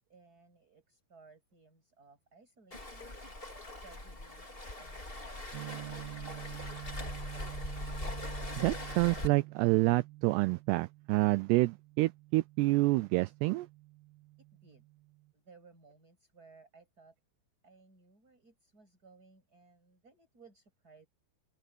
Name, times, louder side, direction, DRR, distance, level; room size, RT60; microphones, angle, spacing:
voice 1, 0.0-3.3 3.8-7.1 14.4-14.8 15.3-17.1 17.6-21.1, right 4 dB, 20° right, 8.0 m, -61 dB
Waves surf, 2.7-9.3, left 1 dB, 15° left, 3.1 m, -41 dB
sound 1, 5.5-15.3, right 20 dB, 65° right, 2.7 m, -48 dB
voice 2, 8.6-13.7, right 21 dB, 85° right, 2.4 m, -28 dB
omnidirectional pair, 5.3 m